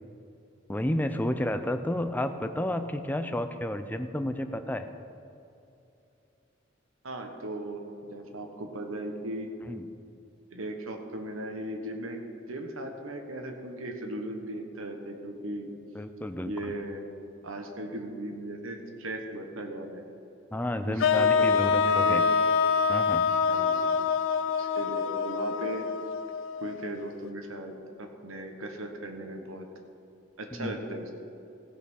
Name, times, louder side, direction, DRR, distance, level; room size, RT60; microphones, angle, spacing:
voice 1, 0.7-4.9 9.7-9.9 15.9-16.7 20.5-22.3 22.9-23.3 30.5-30.7, left 1 dB, 10° left, 8 dB, 0.4 m, -31 dB
voice 2, 7.0-9.5 10.5-15.7 16.4-17.0 17.4-20.0 20.8-21.5 21.8-22.2 23.5-23.9 24.6-25.9 26.6-27.7 28.0-29.7 30.4-31.1, right 1 dB, 90° right, 4 dB, 1.3 m, -37 dB
sound 1, 21.0-27.1, left 5 dB, 70° left, 0.5 m, -25 dB
15.5 x 5.6 x 6.2 m, 2.7 s
head